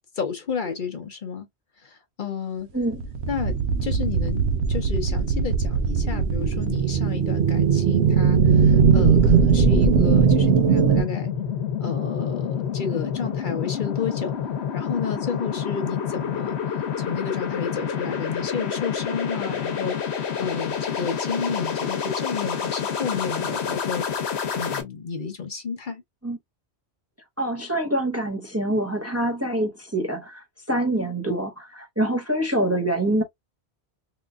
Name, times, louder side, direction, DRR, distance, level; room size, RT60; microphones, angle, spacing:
voice 1, 0.2-1.5 1.8-2.7 3.3-3.5 3.8-4.4 4.7-11.3 11.8-14.4 14.7-16.6 17.0-24.1 24.5-26.0, left 6 dB, 50° left, 0.9 m, -31 dB
sound 1, 2.9-11.0, right 6 dB, 80° right, 0.9 m, -19 dB
sound 2, 8.3-24.8, left 7 dB, 80° left, 1.1 m, -28 dB
voice 2, 27.4-33.2, right 1 dB, 15° right, 0.7 m, -25 dB
3.6 x 3.0 x 2.2 m
omnidirectional pair, 1.1 m